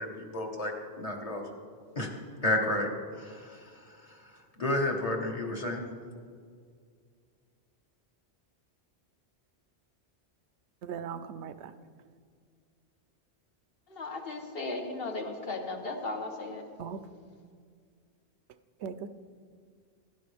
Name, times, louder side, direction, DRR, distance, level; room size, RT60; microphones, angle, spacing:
voice 1, 0.0-1.4 2.0-2.1 2.4-2.9 3.2-3.3 4.6-5.8, left 1 dB, 35° left, 1 dB, 1.3 m, -30 dB
voice 2, 10.8-11.7 16.8-17.1 18.8-19.1, right 7 dB, 80° right, 11 dB, 0.9 m, -39 dB
voice 3, 13.9-16.6, left 2 dB, 60° left, 3 dB, 1.4 m, -36 dB
16.0 x 11.0 x 3.4 m, 2.1 s
omnidirectional pair, 1.1 m